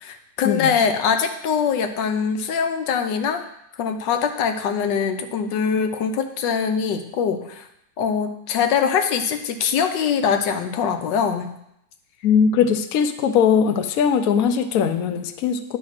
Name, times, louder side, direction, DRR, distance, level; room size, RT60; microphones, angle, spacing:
voice 1, 0.0-3.4 3.8-7.6 8.0-11.5, left 6 dB, 80° left, 7 dB, 1.4 m, -23 dB
voice 2, 12.2-15.8, left 7 dB, 65° left, 9 dB, 0.9 m, -20 dB
9.8 x 3.4 x 6.4 m, 0.78 s
omnidirectional pair, 1.9 m